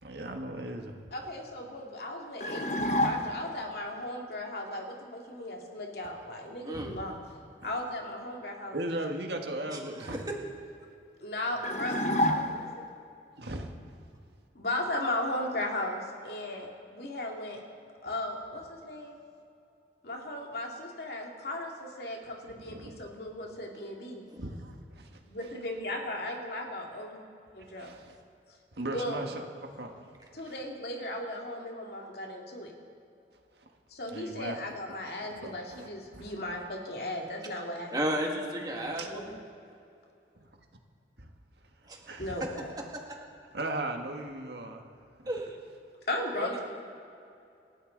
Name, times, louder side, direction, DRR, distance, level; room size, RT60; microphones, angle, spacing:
voice 1, 0.0-0.9 6.7-7.0 7.6-7.7 8.7-10.2 13.4-13.7 22.6-23.0 24.4-25.2 27.8-28.1 28.7-30.0 33.6-33.7 34.1-34.6 35.4-35.9 36.1-36.3 39.0-39.1 41.2-41.3 42.0-42.5 43.5-44.8 45.2-45.3, right 1 dB, 70° right, 3 dB, 1.7 m, -37 dB
voice 2, 1.1-7.1 7.6-8.8 11.2-12.7 14.5-17.6 18.0-19.1 20.0-24.2 25.2-27.1 27.6-27.9 28.9-29.2 30.3-32.7 33.9-37.9 38.7-39.3 42.2-42.7 46.1-46.6, left 1 dB, 60° left, 0 dB, 2.5 m, -36 dB
sound 1, 2.4-3.6 11.6-12.9, left 1 dB, 40° left, 1.0 m, -29 dB
voice 3, 9.7-10.1 24.3-24.4 37.9-39.4 41.9-42.2 43.1-43.2 45.3-45.6 46.3-46.6, right 1 dB, 20° right, 0 dB, 2.1 m, -34 dB
28.0 x 13.0 x 4.0 m, 2.6 s
head